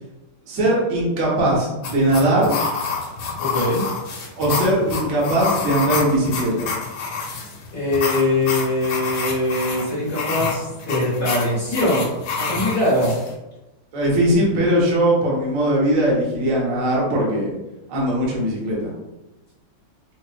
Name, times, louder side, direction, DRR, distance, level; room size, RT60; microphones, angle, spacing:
voice 1, 0.5-2.6 4.4-6.7 13.9-17.5 17.9-18.9, right 1 dB, 50° right, -4 dB, 1.0 m, -20 dB
sound 1, 1.8-13.3, left 4 dB, 80° left, 1.5 m, -28 dB
voice 2, 3.4-3.8 7.7-12.1 12.4-13.1, left 1 dB, 45° left, -8 dB, 1.5 m, -22 dB
4.5 x 2.0 x 2.4 m, 0.98 s
omnidirectional pair, 2.2 m